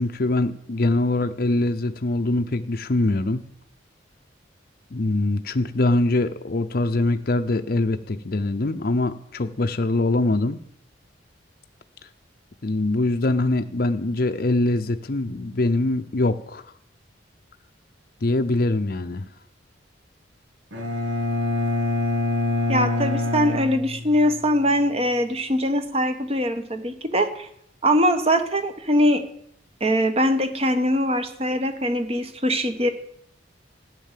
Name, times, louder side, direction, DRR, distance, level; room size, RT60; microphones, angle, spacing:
voice 1, 0.0-3.4 4.9-10.6 12.6-16.6 18.2-19.3, left 2 dB, 50° left, 7 dB, 0.7 m, -23 dB
Bowed string instrument, 20.7-24.6, left 2 dB, 85° right, 3.7 m, -25 dB
voice 2, 22.7-27.5 27.8-29.2 29.8-32.9, equal, 30° right, 9 dB, 1.2 m, -22 dB
14.0 x 9.9 x 7.5 m, 0.72 s
head